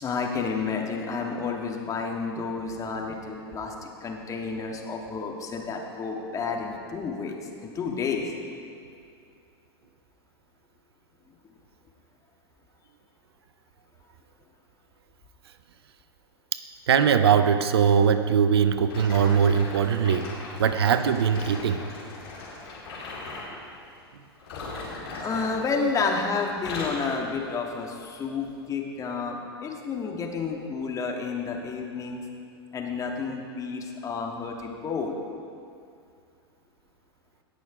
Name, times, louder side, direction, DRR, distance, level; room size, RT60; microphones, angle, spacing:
voice 1, 0.0-7.4 7.6-8.3 25.2-32.3 32.7-35.2, left 4 dB, 25° left, 1 dB, 1.7 m, -30 dB
voice 2, 16.5-21.8, right 7 dB, 70° right, 11 dB, 0.6 m, -21 dB
sound 1, 18.9-23.5 24.4-26.2 26.5-27.1 27.7-27.9 28.6-28.7, left 3 dB, 70° left, 3.0 m, -38 dB
18.0 x 6.2 x 5.0 m, 2.4 s
figure-of-eight pair, 95°, 14 cm